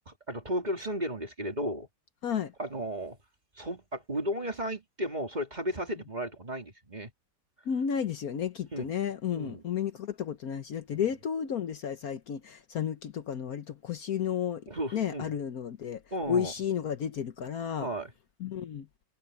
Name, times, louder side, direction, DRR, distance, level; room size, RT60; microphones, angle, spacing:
voice 1, 0.3-1.9 2.6-3.2 3.6-7.1 8.7-8.9 9.3-9.6 10.9-11.0 14.7-15.3 16.1-16.5 17.8-18.1, equal, 25° right, 2.6 m, -34 dB
voice 2, 7.7-16.0 16.3-17.9 18.4-18.9, left 8 dB, 60° left, 1.4 m, -32 dB
omnidirectional pair, 1.8 m